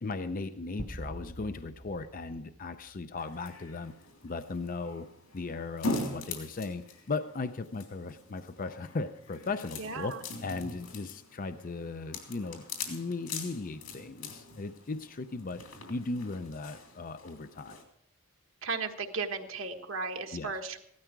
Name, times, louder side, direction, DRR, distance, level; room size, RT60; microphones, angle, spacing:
voice 1, 0.0-3.9 4.2-5.1 5.3-17.8 20.3-20.5, left 3 dB, 40° left, 10 dB, 0.5 m, -37 dB
sound 1, 0.8-3.4, right 1 dB, 20° right, 0.9 m, -45 dB
sound 2, 3.2-17.8, left 2 dB, 75° left, 3.2 m, -42 dB
voice 2, 9.8-10.2 18.6-20.8, right 4 dB, 65° right, 4 dB, 1.5 m, -35 dB
16.5 x 12.5 x 4.7 m, 0.73 s
head